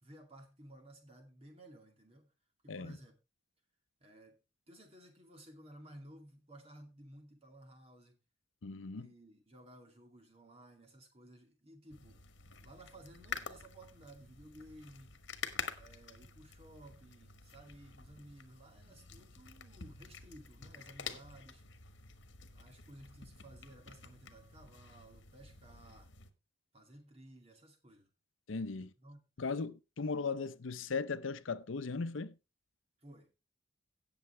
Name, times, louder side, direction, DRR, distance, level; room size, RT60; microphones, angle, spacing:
voice 1, 0.0-2.3 2.6-3.1 4.0-4.4 4.7-8.2 8.9-12.2 12.6-15.2 15.7-21.6 22.5-26.1 26.7-28.1 28.8-29.2 33.0-33.3, right 1 dB, 30° right, 2.4 m, -56 dB
voice 2, 8.6-9.1 28.5-28.9 29.4-32.4, left 4 dB, 85° left, 0.7 m, -38 dB
sound 1, 11.9-26.3, left 6 dB, 70° left, 1.3 m, -48 dB
17.5 x 7.0 x 3.3 m
head